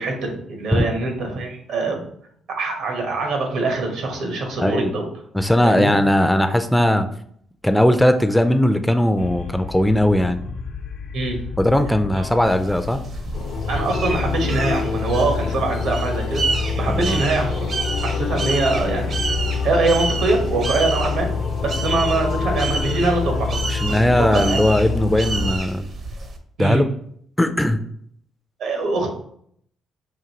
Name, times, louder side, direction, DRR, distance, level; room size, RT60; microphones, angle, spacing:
voice 1, 0.0-2.1 2.5-5.1 5.6-5.9 11.1-11.4 12.1-12.3 13.7-16.4 16.8-17.7 18.0-19.3 19.6-21.3 21.6-23.6 24.0-24.6 26.6-26.8 28.6-29.1, right 3 dB, 80° right, 2 dB, 1.2 m, -23 dB
voice 2, 4.6-4.9 5.3-7.1 7.6-10.4 11.6-13.0 16.9-17.2 23.7-25.9 26.6-26.9 27.4-27.8, left 1 dB, 5° left, 8 dB, 0.3 m, -18 dB
sound 1, 9.2-25.5, left 5 dB, 75° left, 0.5 m, -26 dB
sound 2, 12.4-26.4, right 3 dB, 55° right, 0.6 m, -30 dB
5.0 x 2.6 x 2.9 m, 0.66 s
cardioid pair, 90°, 0 cm